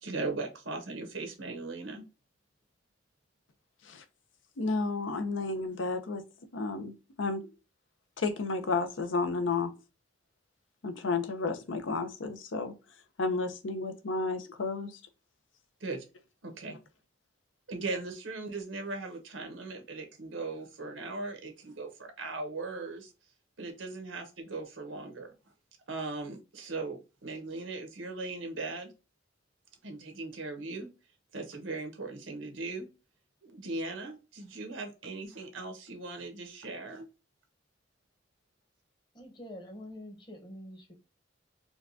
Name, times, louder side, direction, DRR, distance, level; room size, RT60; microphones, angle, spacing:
voice 1, 0.0-2.0 15.8-16.0 16.4-16.8 17.7-23.1 23.6-25.3 25.9-28.9 29.8-30.9 31.3-32.9 33.4-37.1, right 3 dB, 85° right, 1.0 m, -38 dB
voice 2, 4.6-6.2 6.5-6.9 7.2-7.4 8.2-9.7 10.8-12.7 13.2-14.9, left 3 dB, 80° left, 0.6 m, -31 dB
voice 3, 39.1-40.9, left 1 dB, 25° left, 0.9 m, -46 dB
4.4 x 2.3 x 2.6 m
head